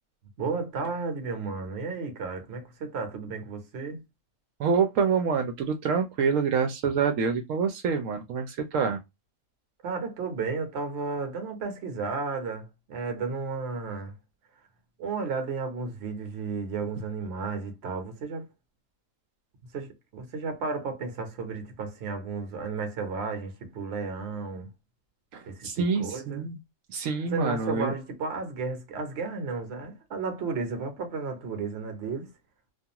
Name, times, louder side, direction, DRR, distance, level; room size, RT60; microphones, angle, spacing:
voice 1, 0.4-4.0 9.8-14.1 15.0-18.5 19.7-24.7 25.5-26.5 27.3-32.3, right 4 dB, 60° right, 1.0 m, -33 dB
voice 2, 4.6-9.0 25.3-26.6 26.9-27.9, right 5 dB, 85° right, 1.0 m, -26 dB
2.4 x 2.3 x 2.8 m
omnidirectional pair, 1.3 m